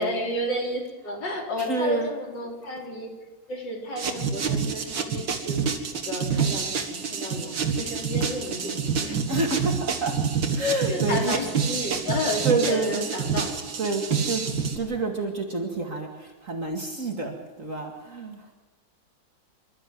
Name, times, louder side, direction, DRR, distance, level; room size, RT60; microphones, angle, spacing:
voice 1, 0.0-3.2 3.5-5.6 5.9-9.1 10.9-13.6, left 1 dB, 70° left, 1 dB, 4.3 m, -32 dB
voice 2, 1.7-2.1 9.3-10.2 10.5-11.4 12.4-13.1 13.8-14.5 14.7-18.5, right 3 dB, 45° right, 2 dB, 2.5 m, -28 dB
sound 1, 4.0-14.8, right 6 dB, 85° right, 2.6 m, -27 dB
27.0 x 12.5 x 7.7 m, 1.2 s
omnidirectional pair, 2.1 m